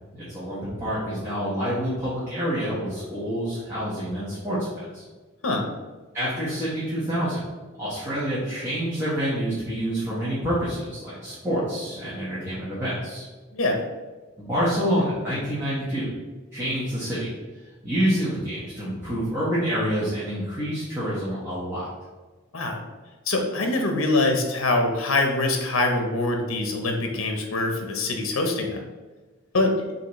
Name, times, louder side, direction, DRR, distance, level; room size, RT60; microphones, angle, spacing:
voice 1, 0.1-5.0 6.1-7.4 7.8-13.2 14.4-16.1 16.5-17.3 17.8-21.9, equal, 10° right, -11 dB, 1.2 m, -27 dB
voice 2, 13.5-13.8 22.5-22.8 23.3-28.8 29.5-29.7, left 2 dB, 70° left, 3 dB, 0.7 m, -24 dB
5.9 x 2.8 x 3.1 m, 1.3 s
head